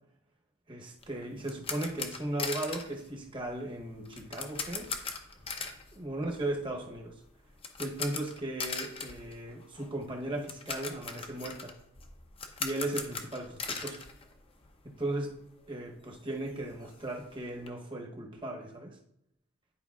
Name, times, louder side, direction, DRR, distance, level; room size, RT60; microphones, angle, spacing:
voice 1, 0.7-4.9 5.9-7.1 7.8-11.8 12.6-14.0 14.8-15.3 15.7-19.0, right 1 dB, 25° right, 1 dB, 0.9 m, -37 dB
sound 1, 1.0-15.0 15.2-15.4 15.8-15.9 16.1-17.7, left 5 dB, 30° left, 0.6 m, -40 dB
10.5 x 4.9 x 2.4 m, 0.78 s
head